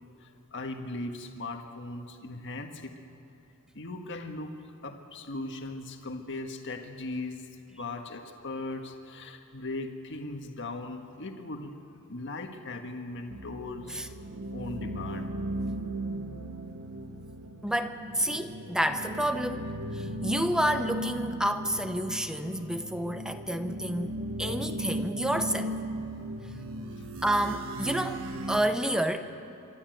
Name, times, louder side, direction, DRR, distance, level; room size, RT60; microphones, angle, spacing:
voice 1, 0.2-2.9 3.7-4.5 4.8-11.7 12.1-14.0 14.5-15.3 27.0-27.1, left 2 dB, 55° left, 4 dB, 1.6 m, -38 dB
sound 1, 13.3-28.6, right 1 dB, 65° right, 1.4 m, -37 dB
voice 2, 17.6-24.1 24.4-25.7 27.2-29.2, right 1 dB, 5° right, 8 dB, 0.9 m, -29 dB
26.5 x 13.0 x 9.1 m, 2.9 s
head